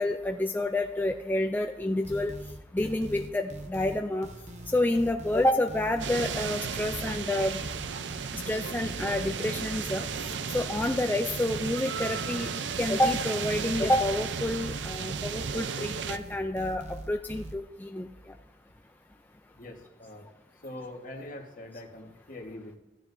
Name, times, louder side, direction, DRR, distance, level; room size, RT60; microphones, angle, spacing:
voice 1, 0.0-2.3 2.7-4.3 4.7-7.6 8.5-10.0 10.5-12.5 12.8-18.1, left 1 dB, 10° left, 4 dB, 0.4 m, -28 dB
sound 1, 2.0-17.5, right 1 dB, 40° right, 0.9 m, -42 dB
sound 2, 6.0-16.2, right 6 dB, 80° right, 0.6 m, -34 dB
voice 2, 19.6-20.3 20.6-22.8, left 1 dB, 50° left, 2 dB, 1.4 m, -43 dB
15.5 x 10.0 x 2.6 m, 0.94 s
head